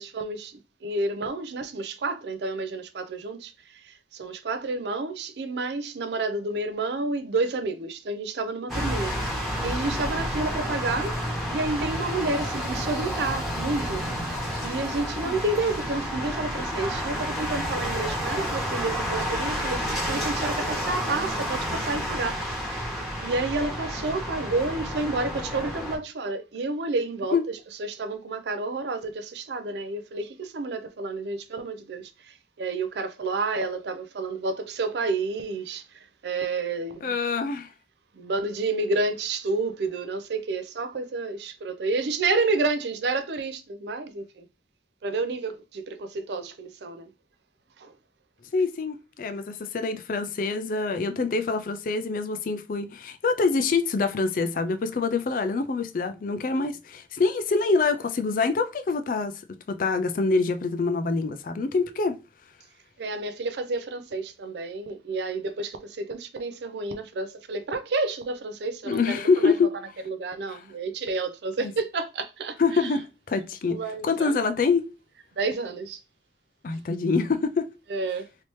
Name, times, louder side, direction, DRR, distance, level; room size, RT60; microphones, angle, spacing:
voice 1, 0.0-11.2 11.5-14.0 14.6-22.8 23.2-37.1 38.1-44.5 45.0-47.1 47.8-47.9 63.0-69.7 70.1-72.9 73.7-74.3 75.4-76.0 77.9-78.3, right 3 dB, 70° right, 0.5 m, -30 dB
sound 1, 8.7-26.0, equal, ahead, 1.1 m, -30 dB
voice 2, 37.0-37.7 48.5-59.3 59.7-62.2 68.8-69.7 70.5-70.6 71.6-71.7 72.6-74.9 76.6-77.7, left 4 dB, 50° left, 0.4 m, -25 dB
3.2 x 2.8 x 3.0 m
head